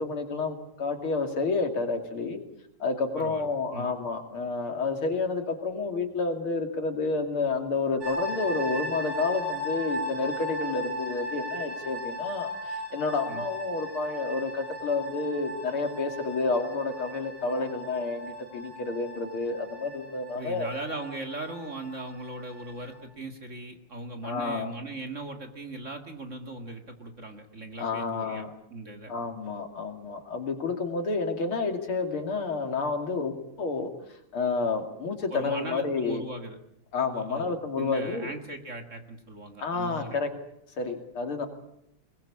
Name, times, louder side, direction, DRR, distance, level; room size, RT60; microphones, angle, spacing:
voice 1, 0.0-2.4 2.8-20.7 24.2-24.7 27.8-28.5 29.1-33.9 34.3-36.2 36.9-38.3 39.6-40.3 40.8-41.5, left 3 dB, 70° left, 5 dB, 3.4 m, -30 dB
voice 2, 3.2-3.9 13.3-13.4 20.3-29.1 35.3-36.6 37.1-40.2, right 2 dB, 35° right, 5 dB, 2.2 m, -39 dB
sound 1, 8.0-23.0, left 1 dB, 80° right, 8.8 m, -37 dB
21.5 x 21.5 x 8.6 m, 0.76 s
omnidirectional pair, 2.4 m